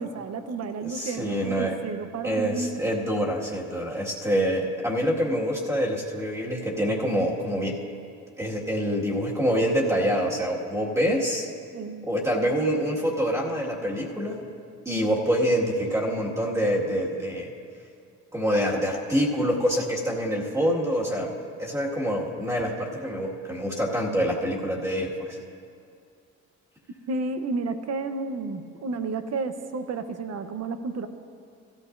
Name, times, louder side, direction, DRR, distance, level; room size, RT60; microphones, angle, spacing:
voice 1, 0.0-2.8 11.7-12.1 27.1-31.1, right 3 dB, 55° right, 9 dB, 0.9 m, -31 dB
voice 2, 0.8-1.8 2.2-7.8 8.4-11.5 12.0-14.5 14.9-17.5 18.3-21.3 21.6-25.4, equal, 10° right, -4 dB, 1.9 m, -26 dB
16.5 x 14.0 x 2.6 m, 2.3 s
cardioid pair, 90°, 30 cm